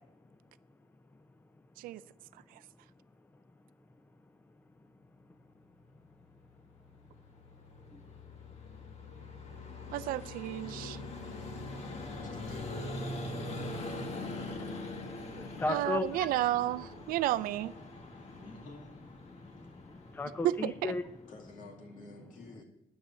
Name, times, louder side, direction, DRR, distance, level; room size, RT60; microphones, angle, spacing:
Vehicle, 6.8-21.5, left 2 dB, 45° left, 1.9 m, -43 dB
voice 1, 9.9-11.0 15.7-17.7 20.4-21.0, right 14 dB, 80° right, 16 dB, 0.4 m, -32 dB
voice 2, 12.2-13.2 18.3-19.0 21.3-22.6, left 3 dB, 65° left, 1 dB, 2.6 m, -51 dB
voice 3, 15.0-16.3 18.1-18.4 19.3-21.0, left 2 dB, 15° left, 10 dB, 0.6 m, -36 dB
10.0 x 7.7 x 6.9 m, 0.89 s
cardioid pair, 110°, 14 cm